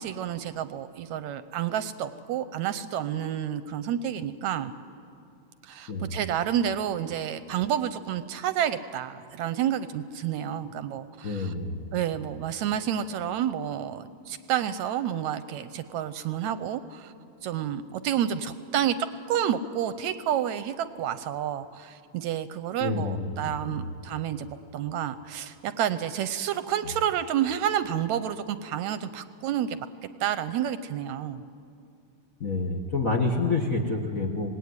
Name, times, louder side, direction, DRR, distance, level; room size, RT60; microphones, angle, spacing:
voice 1, 0.0-4.7 5.6-11.5 11.9-17.1 17.4-19.0 19.3-29.8 30.2-31.4, right 10 dB, 75° right, 12 dB, 1.9 m, -29 dB
voice 2, 11.2-11.8 22.8-23.8 32.4-34.5, left 3 dB, 40° left, 2 dB, 1.3 m, -28 dB
25.5 x 19.5 x 9.6 m, 2.5 s
omnidirectional pair, 3.6 m